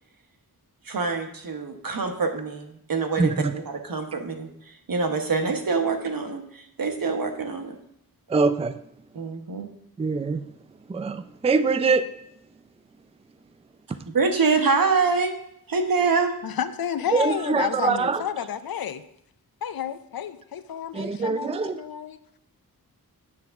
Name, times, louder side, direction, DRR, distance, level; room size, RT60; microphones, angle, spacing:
voice 1, 0.8-7.8 9.1-9.7 13.9-15.4 15.7-16.4, right 4 dB, 65° right, 5 dB, 1.1 m, -25 dB
voice 2, 3.2-3.5 8.3-8.8 10.0-10.5 10.9-12.0 17.1-18.2 20.9-21.8, right 4 dB, 15° right, 12 dB, 0.4 m, -23 dB
voice 3, 16.4-19.0 19.6-22.2, left 8 dB, 70° left, 13 dB, 0.6 m, -30 dB
9.6 x 3.6 x 6.8 m, 0.75 s
wide cardioid pair, 70°, 37 cm